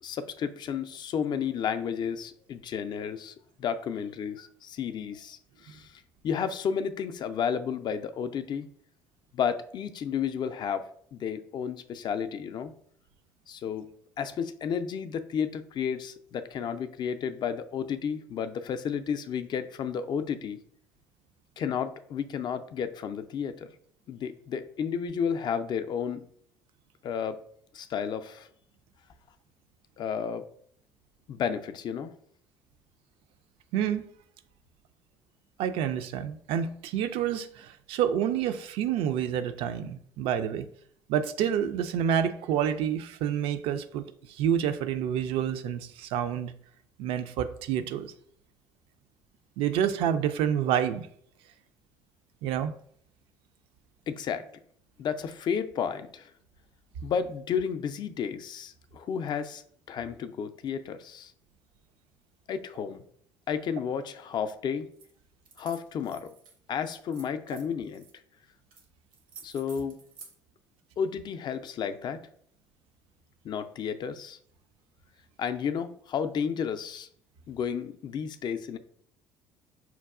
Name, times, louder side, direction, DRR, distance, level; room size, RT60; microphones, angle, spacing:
voice 1, 0.0-8.7 9.3-12.7 13.5-13.9 14.2-20.6 21.6-23.7 24.1-26.2 27.0-27.4 27.7-28.5 30.0-30.5 31.3-32.1 54.1-54.5 55.0-56.3 57.0-59.6 59.9-61.3 62.5-63.0 63.5-64.9 65.6-66.3 66.7-68.0 69.4-70.0 71.0-72.3 73.4-74.4 75.4-77.1 77.5-78.8, left 7 dB, 45° left, 0.4 m, -32 dB
voice 2, 33.7-34.0 35.6-40.7 41.1-44.0 44.4-46.5 47.0-48.1 49.6-51.1 52.4-52.7 67.5-67.6, right 9 dB, 65° right, 0.4 m, -28 dB
sound 1, 64.9-65.1 65.4-66.5 66.9-68.1 68.7-68.8 69.1-70.3, right 5 dB, 85° right, 0.8 m, -51 dB
5.7 x 2.3 x 2.4 m
hypercardioid pair, 60°, 10 cm